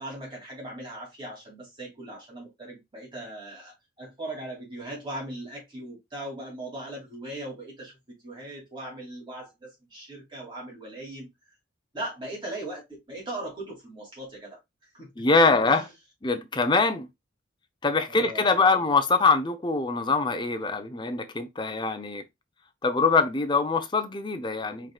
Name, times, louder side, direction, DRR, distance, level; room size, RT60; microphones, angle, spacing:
voice 1, 0.0-11.3 11.9-14.6 14.9-15.1 15.7-15.9 18.1-18.8, right 1 dB, 25° right, 2.8 m, -39 dB
voice 2, 15.2-15.9 16.2-17.1 17.8-22.2 22.8-24.9, left 4 dB, 25° left, 0.6 m, -23 dB
4.8 x 4.5 x 2.3 m
head